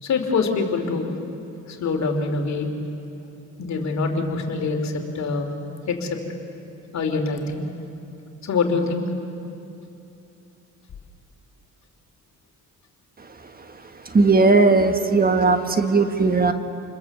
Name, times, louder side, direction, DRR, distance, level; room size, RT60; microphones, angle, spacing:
voice 1, 0.0-1.2 1.7-2.7 3.6-5.5 5.9-6.2 6.9-7.6 8.4-9.0, left 4 dB, 65° left, 4 dB, 2.8 m, -24 dB
voice 2, 14.0-16.5, right 3 dB, 30° right, 8 dB, 1.5 m, -17 dB
28.5 x 21.5 x 7.2 m, 2.7 s
cardioid pair, 90°, 30 cm